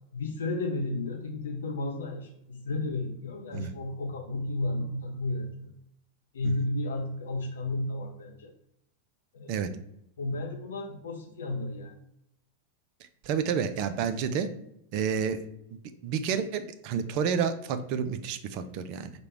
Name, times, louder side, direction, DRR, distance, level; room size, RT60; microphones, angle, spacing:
voice 1, 0.1-5.7 6.3-8.5 9.3-9.7 10.2-12.0, left 2 dB, 65° left, 3 dB, 0.4 m, -33 dB
voice 2, 13.2-14.5 14.9-15.4 15.7-19.1, right 7 dB, 45° right, 10 dB, 0.4 m, -30 dB
4.8 x 2.2 x 4.7 m, 0.77 s
figure-of-eight pair, 90°, 0 cm